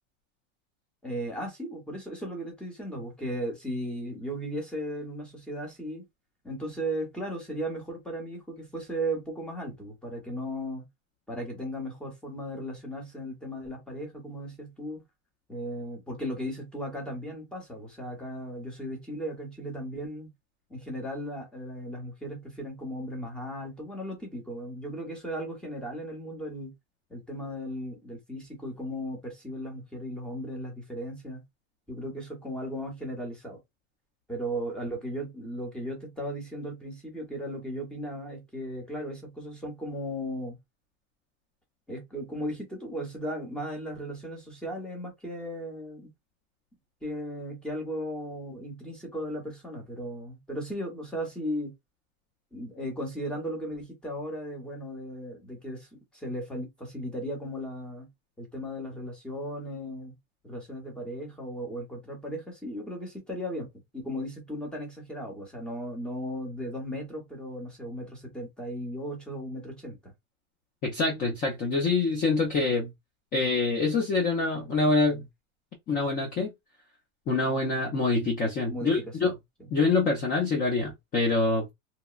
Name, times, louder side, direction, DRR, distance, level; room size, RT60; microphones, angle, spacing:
voice 1, 1.0-6.0 6.4-10.8 11.3-15.0 15.5-20.3 20.7-26.7 27.1-31.4 31.9-33.6 34.3-40.6 41.9-46.1 47.0-51.7 52.5-58.1 58.4-60.1 60.4-63.7 63.9-70.1 78.7-79.3 79.6-79.7, equal, ahead, 0.8 m, -36 dB
voice 2, 70.8-72.9 73.3-75.3 75.9-76.5 77.3-79.3 79.7-81.7, left 3 dB, 25° left, 0.5 m, -25 dB
2.9 x 2.1 x 2.3 m
supercardioid pair, 155°, 38 cm